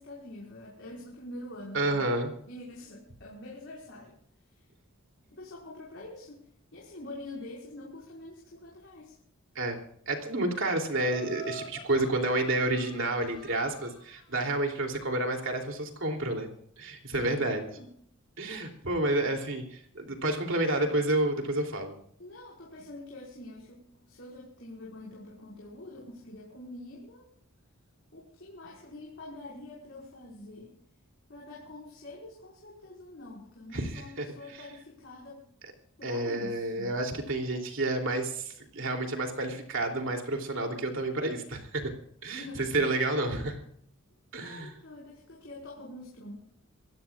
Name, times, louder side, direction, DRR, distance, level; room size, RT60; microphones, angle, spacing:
voice 1, 0.0-2.1 2.5-4.1 4.5-4.7 5.4-6.5 6.7-9.2 11.9-12.0 17.5-17.9 19.0-19.1 22.2-27.2 28.1-30.7 31.3-34.1 34.3-35.4 36.0-37.0 42.3-42.8 44.4-46.4, left 1 dB, 60° left, -5 dB, 5.5 m, -45 dB
voice 2, 1.7-2.3 9.5-9.8 10.1-16.5 16.8-17.7 18.4-21.9 33.7-34.3 36.0-41.9 42.2-43.6 44.3-44.7, right 2 dB, 60° right, 3 dB, 3.1 m, -30 dB
Laughter, 11.0-14.2, left 1 dB, 25° left, 4.3 m, -47 dB
27.5 x 15.5 x 2.5 m, 0.66 s
head